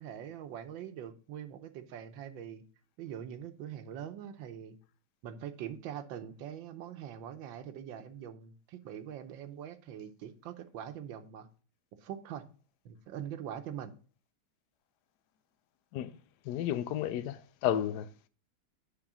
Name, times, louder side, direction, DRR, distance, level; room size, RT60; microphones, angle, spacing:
voice 1, 0.0-2.6 3.0-4.8 5.2-11.5 12.0-12.5 12.8-13.9, right 9 dB, 70° right, 1.5 m, -43 dB
voice 2, 16.5-18.1, left 11 dB, 75° left, 0.9 m, -32 dB
9.9 x 3.5 x 6.0 m
omnidirectional pair, 2.2 m